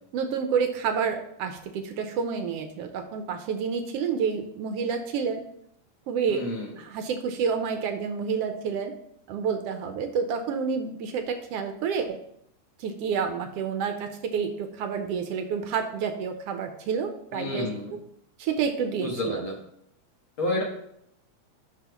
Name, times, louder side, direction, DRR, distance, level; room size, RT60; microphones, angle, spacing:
voice 1, 0.1-5.4 6.1-6.4 6.8-8.9 9.3-12.2 12.8-18.0 18.4-19.4, right 6 dB, 75° right, 6 dB, 1.4 m, -29 dB
voice 2, 6.3-6.7 17.3-18.0 19.0-19.6 20.4-20.6, left 1 dB, 50° left, -2 dB, 1.9 m, -30 dB
11.5 x 5.6 x 3.0 m, 0.73 s
omnidirectional pair, 3.3 m